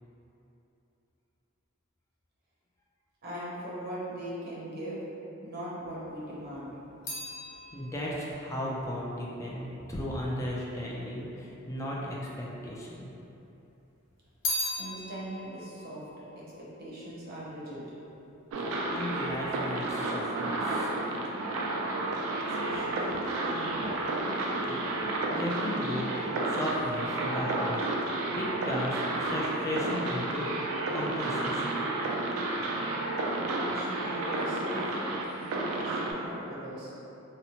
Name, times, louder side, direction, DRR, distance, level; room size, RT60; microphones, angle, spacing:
voice 1, 3.2-5.0 5.4-6.8 14.8-16.1 16.3-17.8 22.4-23.1 23.4-24.1 33.4-34.9 35.3-36.9, right 1 dB, 50° right, -8 dB, 0.7 m, -40 dB
sound 1, 6.1-10.5 11.3-12.1 12.4-13.5 13.8-17.4 17.7-18.2, left 2 dB, 65° left, 0.6 m, -39 dB
voice 2, 7.7-13.1 18.9-20.9 24.7-26.1 26.4-30.5 30.9-31.8, equal, 15° left, -5 dB, 0.3 m, -35 dB
sound 2, 18.5-36.1, right 2 dB, 75° right, 0.3 m, -31 dB
2.8 x 2.0 x 2.8 m, 2.9 s
head